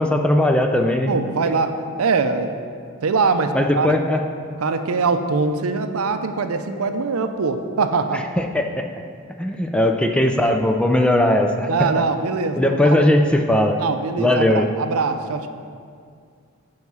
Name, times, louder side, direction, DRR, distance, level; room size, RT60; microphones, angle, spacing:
voice 1, 0.0-1.1 3.5-4.2 8.4-8.8 9.4-11.9 12.6-13.8 14.2-14.7, left 1 dB, 5° left, 4 dB, 0.3 m, -18 dB
voice 2, 1.1-2.6 3.0-4.0 4.6-8.3 11.7-13.1 13.8-15.5, right 4 dB, 75° right, 8 dB, 0.5 m, -22 dB
9.3 x 4.8 x 5.5 m, 2.2 s
head